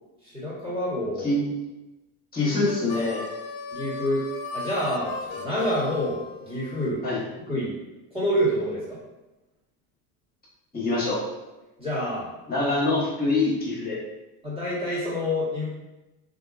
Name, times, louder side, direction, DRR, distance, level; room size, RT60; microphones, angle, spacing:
voice 1, 0.2-1.3 3.7-4.2 4.5-7.0 7.5-7.7 8.1-9.0 11.8-12.3 14.4-15.7, equal, 15° right, -10 dB, 1.3 m, -27 dB
voice 2, 2.3-3.2 7.0-7.2 10.7-11.2 12.5-14.0, left 2 dB, 20° left, -6 dB, 1.2 m, -24 dB
Harmonica, 2.7-6.9, left 4 dB, 55° left, 0.5 m, -36 dB
2.7 x 2.5 x 2.4 m, 1.0 s
cardioid pair, 125°, 43 cm